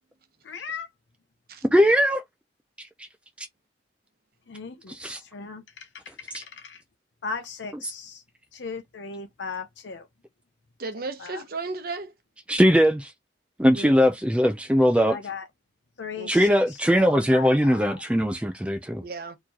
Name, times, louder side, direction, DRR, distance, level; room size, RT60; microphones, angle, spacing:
voice 1, 0.4-0.9 4.5-6.8 7.2-8.2 8.5-10.1 11.2-11.4 15.1-15.5 16.0-18.0, left 5 dB, 80° left, 0.7 m, -38 dB
voice 2, 1.7-2.2 4.9-5.2 6.3-6.4 12.5-13.1 13.6-15.2 16.3-19.0, equal, 5° right, 0.4 m, -20 dB
voice 3, 10.8-12.1 13.7-13.9 16.2-16.5 19.0-19.4, right 3 dB, 55° right, 0.9 m, -34 dB
4.4 x 3.0 x 2.9 m
head